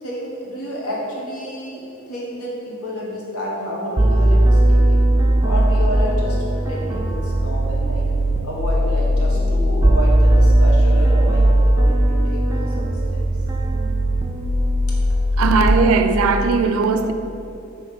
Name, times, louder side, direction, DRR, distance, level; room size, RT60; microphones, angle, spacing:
voice 1, 0.0-5.0 5.4-8.0 8.4-13.2, equal, 85° left, -5 dB, 1.5 m, -30 dB
sound 1, 4.0-15.7, right 1 dB, 15° right, 0.3 m, -17 dB
voice 2, 15.4-17.1, right 4 dB, 80° right, 7 dB, 0.4 m, -18 dB
5.4 x 3.4 x 5.5 m, 2.9 s
head